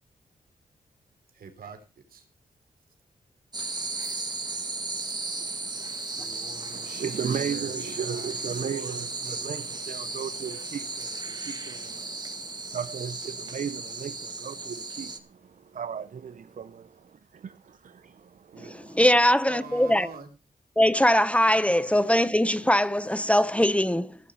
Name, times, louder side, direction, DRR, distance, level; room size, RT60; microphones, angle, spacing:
voice 1, 1.3-1.8 2.1-2.2 6.1-8.3 8.6-9.5 19.5-20.4, right 5 dB, 85° right, 3.3 m, -44 dB
sound 1, 3.5-15.2, right 3 dB, 30° right, 2.0 m, -35 dB
voice 2, 6.7-19.0, right 7 dB, 60° right, 0.7 m, -36 dB
voice 3, 18.6-20.1 20.8-24.2, equal, 10° left, 0.8 m, -21 dB
16.5 x 7.3 x 5.7 m
cardioid pair, 85°, 15 cm